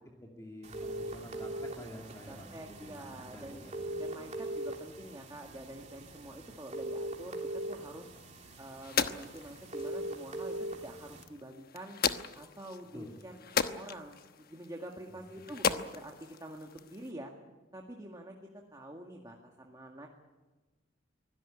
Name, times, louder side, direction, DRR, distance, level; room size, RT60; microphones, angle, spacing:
voice 1, 0.2-4.0 12.9-13.1 15.1-15.5, equal, 15° left, 0 dB, 2.5 m, -49 dB
sound 1, 0.6-11.2, right 1 dB, 35° right, 3.2 m, -41 dB
voice 2, 2.3-3.6 4.0-7.4 7.7-8.1 8.6-12.0 12.3-16.2 16.4-17.3 17.7-18.4 18.7-20.1, right 1 dB, 20° right, 1 dB, 2.0 m, -47 dB
sound 2, 8.1-17.1, left 6 dB, 50° left, 1.1 m, -37 dB
24.5 x 17.0 x 9.9 m, 1.2 s
head